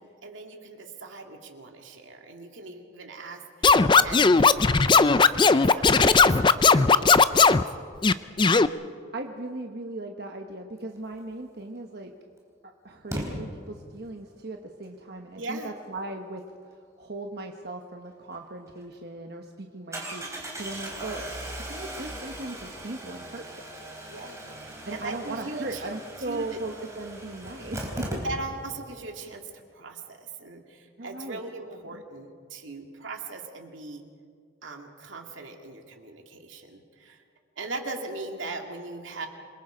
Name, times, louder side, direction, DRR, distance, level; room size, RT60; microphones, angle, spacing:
voice 1, 0.0-7.5 15.3-15.7 24.1-26.6 28.2-34.1 34.6-37.2 37.6-39.3, right 3 dB, 80° right, 3 dB, 2.4 m, -39 dB
Scratching (performance technique), 3.6-7.6 8.0-8.7, left 4 dB, 25° left, 0.4 m, -17 dB
voice 2, 9.1-12.1 12.6-16.4 17.0-21.2 21.7-23.4 24.8-28.2 31.0-32.0, right 2 dB, 55° right, 3 dB, 1.1 m, -38 dB
Engine starting, 11.6-11.7 13.1-13.2 18.3-18.4 18.8-18.9 19.9-28.7 29.0-29.1 29.3-29.4, right 1 dB, 15° right, 4.2 m, -38 dB
27.5 x 22.0 x 5.1 m, 2.2 s
head